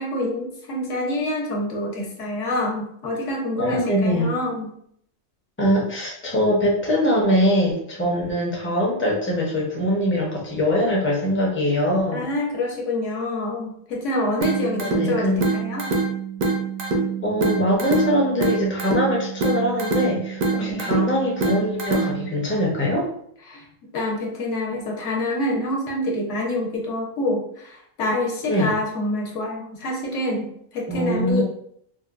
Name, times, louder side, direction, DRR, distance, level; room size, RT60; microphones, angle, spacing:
voice 1, 0.0-4.7 12.1-15.9 20.6-21.0 23.5-23.7 23.9-31.4, left 1 dB, 70° left, -1 dB, 1.1 m, -27 dB
voice 2, 3.6-4.3 5.6-12.3 14.8-15.5 17.2-23.1 28.5-28.7 30.9-31.4, equal, 15° left, -3 dB, 0.5 m, -22 dB
sound 1, 14.4-22.4, right 3 dB, 85° right, 1.0 m, -25 dB
3.7 x 2.2 x 2.4 m, 0.67 s
omnidirectional pair, 1.4 m